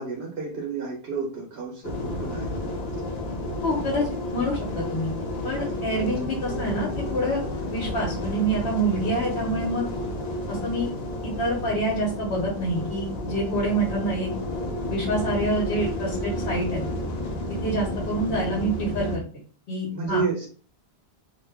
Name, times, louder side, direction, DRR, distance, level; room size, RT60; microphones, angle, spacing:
voice 1, 0.0-2.7 19.9-20.5, right 5 dB, 80° right, -1 dB, 1.0 m, -31 dB
sound 1, 1.8-19.2, left 1 dB, 50° left, 0.6 m, -31 dB
voice 2, 3.6-5.1 5.4-7.4 7.7-9.9 10.5-10.9 11.2-14.3 14.9-16.8 17.6-19.2 19.7-20.2, right 1 dB, 75° left, -4 dB, 1.1 m, -27 dB
2.5 x 2.2 x 3.4 m, 0.42 s
omnidirectional pair, 1.1 m